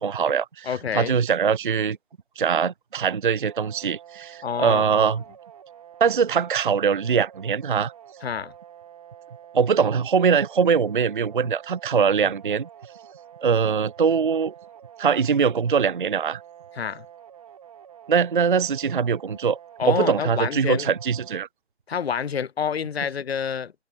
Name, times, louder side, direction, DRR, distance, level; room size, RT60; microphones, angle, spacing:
voice 1, 0.0-2.0 2.4-5.2 6.0-7.9 9.5-12.7 13.4-14.5 15.0-16.4 18.1-19.6 19.9-21.5, right 6 dB, 50° right, 0.4 m, -22 dB
voice 2, 0.6-1.2 4.4-5.1 8.2-8.5 16.7-17.1 19.8-20.9 21.9-23.7, left 7 dB, 60° left, 0.6 m, -28 dB
sound 1, 3.4-21.5, right 9 dB, 30° right, 1.7 m, -47 dB
figure-of-eight pair, 150°, 34 cm